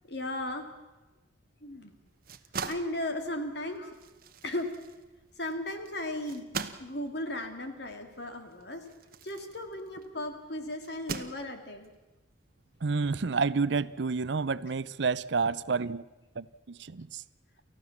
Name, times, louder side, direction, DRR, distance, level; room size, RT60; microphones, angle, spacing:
voice 1, 0.1-0.7 1.6-1.9 2.7-4.0 4.4-4.7 5.4-6.5 6.8-8.9 9.2-11.9, left 1 dB, 55° left, 2.5 m, -36 dB
sound 1, 2.1-10.2 10.8-11.9, right 5 dB, 45° right, 1.0 m, -42 dB
voice 2, 12.8-16.0 16.4-16.5 16.9-17.2, right 4 dB, 65° right, 0.6 m, -29 dB
29.5 x 14.5 x 7.2 m
head